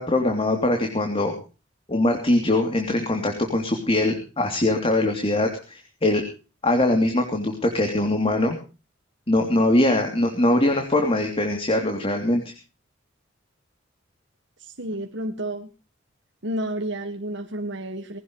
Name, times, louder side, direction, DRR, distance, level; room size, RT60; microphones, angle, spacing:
voice 1, 0.0-1.3 1.9-6.2 6.6-8.6 9.3-12.5, left 1 dB, 30° left, 4 dB, 3.1 m, -22 dB
voice 2, 14.6-15.7 16.4-18.2, right 1 dB, 65° right, 4 dB, 1.8 m, -31 dB
20.0 x 18.0 x 3.2 m, 0.35 s
head